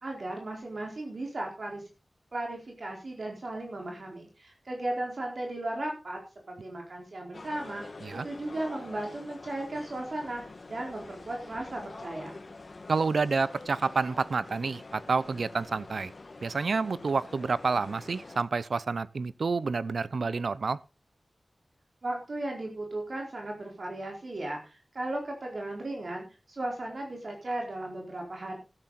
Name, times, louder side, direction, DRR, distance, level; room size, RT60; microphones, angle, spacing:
voice 1, 0.0-1.8 2.3-6.2 6.5-7.8 8.1-12.4 22.0-28.6, right 1 dB, 65° right, 4.4 m, -36 dB
sound 1, 7.3-18.4, left 3 dB, 60° left, 1.9 m, -46 dB
voice 2, 12.9-16.1 16.4-20.8, right 4 dB, 80° right, 0.6 m, -29 dB
13.0 x 12.0 x 4.1 m
wide cardioid pair, 65°, 0 cm